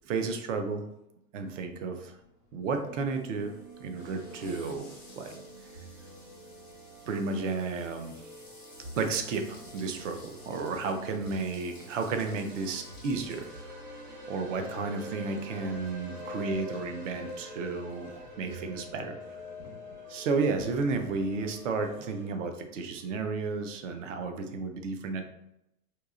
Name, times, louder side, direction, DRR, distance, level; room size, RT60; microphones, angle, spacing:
voice 1, 0.0-0.8 1.3-2.2 2.5-3.5 3.8-4.9 5.2-5.4 7.1-8.3 9.0-13.7 14.3-19.2 20.1-25.2, right 4 dB, 55° right, 6 dB, 0.5 m, -32 dB
sound 1, 1.5-19.7, left 2 dB, 10° right, 0.4 m, -56 dB
sound 2, 2.8-22.3, left 1 dB, 35° right, 1.4 m, -47 dB
sound 3, 11.9-20.7, left 1 dB, 85° right, 1.3 m, -47 dB
4.4 x 2.7 x 2.5 m, 0.83 s
supercardioid pair, 175°, 47 cm